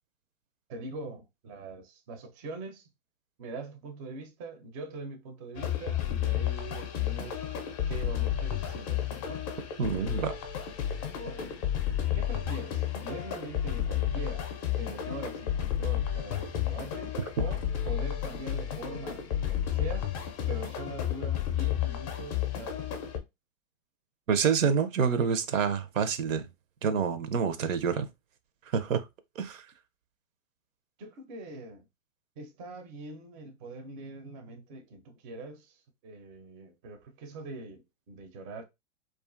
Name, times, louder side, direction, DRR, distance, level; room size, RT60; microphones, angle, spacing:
voice 1, 0.7-2.9 3.4-7.5 7.9-9.4 11.2-11.6 12.1-14.5 14.8-20.1 20.5-23.0 31.0-31.9 32.4-38.6, right 2 dB, 30° right, 0.4 m, -43 dB
sound 1, 5.5-23.2, left 10 dB, 30° left, 0.4 m, -32 dB
voice 2, 9.8-10.3 24.3-26.5 26.8-28.1 28.7-29.1 29.4-29.7, right 6 dB, 80° right, 0.6 m, -27 dB
2.5 x 2.4 x 2.4 m
hypercardioid pair, 130°, 39 cm